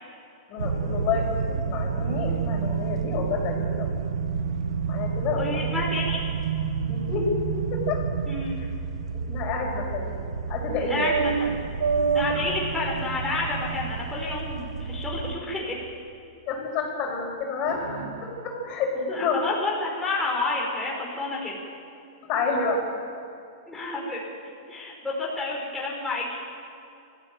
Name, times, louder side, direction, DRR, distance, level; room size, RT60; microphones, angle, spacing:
voice 1, 0.5-1.4 1.7-3.9 4.9-5.4 6.9-7.3 7.7-8.1 8.6-8.7 9.3-10.2 10.5-11.1 12.3-12.5 16.5-17.8 18.2-19.5 22.3-22.8, left 4 dB, 40° left, 0 dB, 5.9 m, -29 dB
sound 1, 0.6-15.4, right 6 dB, 85° right, 1.2 m, -29 dB
voice 2, 5.4-6.2 8.3-8.5 10.9-11.6 12.1-15.7 19.2-21.6 23.7-24.2 24.7-26.4, left 2 dB, 5° left, -4 dB, 5.0 m, -29 dB
sound 2, 17.6-20.3, right 3 dB, 70° right, 3.3 m, -42 dB
22.5 x 15.5 x 9.2 m, 2.6 s
hypercardioid pair, 125°, 3 cm